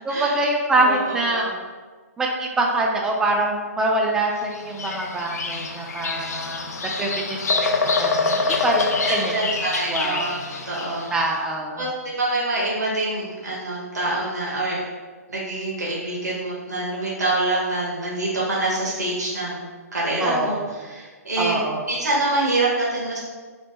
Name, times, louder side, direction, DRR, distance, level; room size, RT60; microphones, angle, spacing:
voice 1, 0.0-1.5 2.2-7.7 8.0-9.4 9.9-10.2 11.1-11.9 20.2-20.6 21.4-21.9, right 2 dB, 5° right, 0 dB, 0.3 m, -24 dB
voice 2, 0.7-1.5 9.0-11.1 11.8-11.9 12.2-14.8 15.3-19.6 19.9-21.6 21.9-23.2, right 2 dB, 85° right, -5 dB, 1.0 m, -25 dB
Bird vocalization bird call bird song, 4.5-11.2, left 4 dB, 75° left, 0.4 m, -25 dB
3.0 x 2.0 x 3.4 m, 1.4 s
hypercardioid pair, 135°, 9 cm